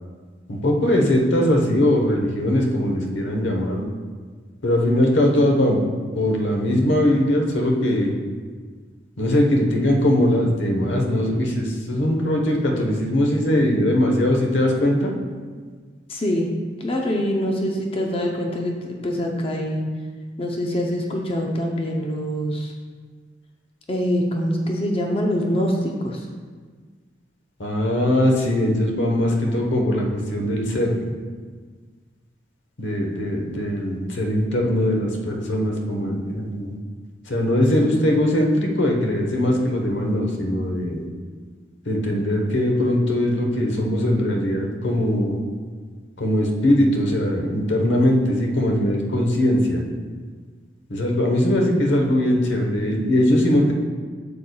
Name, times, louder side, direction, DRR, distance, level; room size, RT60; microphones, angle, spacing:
voice 1, 0.5-3.8 4.6-5.8 6.2-8.1 9.2-15.1 27.6-31.2 32.8-36.8 37.3-41.0 41.9-45.4 46.2-49.8 50.9-53.7, left 1 dB, 90° left, 1 dB, 1.1 m, -20 dB
voice 2, 16.1-16.5 16.8-18.7 19.0-19.8 20.4-22.7 23.9-26.3, equal, 30° left, 0 dB, 0.6 m, -24 dB
8.4 x 6.9 x 2.3 m, 1.5 s
head